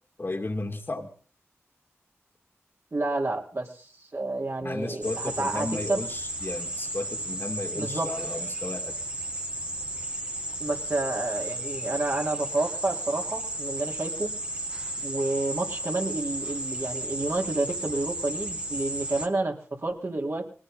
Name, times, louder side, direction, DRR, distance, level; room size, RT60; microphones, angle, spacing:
voice 1, 0.2-1.1 4.6-8.9, left 2 dB, 45° left, 4 dB, 2.4 m, -34 dB
voice 2, 2.9-6.0 7.8-8.1 10.6-14.3 15.0-20.4, right 2 dB, 55° right, -1 dB, 4.0 m, -30 dB
sound 1, 5.0-19.3, right 1 dB, 20° right, 1.6 m, -34 dB
20.0 x 17.5 x 4.0 m, 0.42 s
cardioid pair, 55°, 5 cm